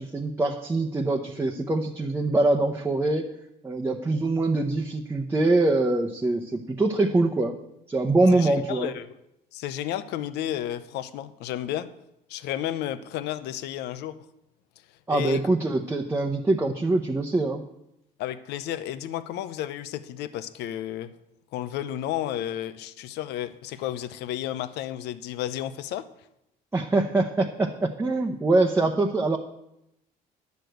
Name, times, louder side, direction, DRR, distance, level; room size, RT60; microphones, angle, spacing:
voice 1, 0.0-3.3 3.6-7.6 7.9-8.9 15.1-17.6 26.7-29.4, right 2 dB, 15° right, 0 dB, 0.9 m, -24 dB
voice 2, 8.3-9.1 9.5-11.9 12.3-14.2 15.1-15.4 18.2-21.1 21.5-26.0, left 12 dB, 80° left, 13 dB, 0.7 m, -32 dB
10.5 x 6.7 x 7.9 m, 0.82 s
cardioid pair, 110°, 17 cm